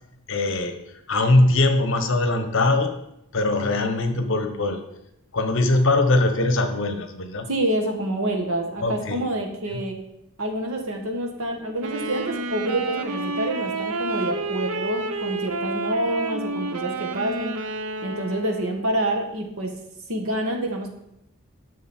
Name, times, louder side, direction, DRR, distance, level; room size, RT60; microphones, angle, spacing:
voice 1, 0.3-0.8 1.1-2.9 3.3-4.8 5.3-7.5 8.8-9.2, left 2 dB, 60° left, 8 dB, 1.1 m, -21 dB
voice 2, 7.5-10.0 10.4-17.6 18.0-19.7 20.1-20.9, right 1 dB, 65° right, 3 dB, 1.6 m, -27 dB
Wind instrument woodwind instrument, 11.8-19.0, right 3 dB, 85° right, 0.8 m, -30 dB
11.0 x 6.5 x 4.4 m, 0.83 s
head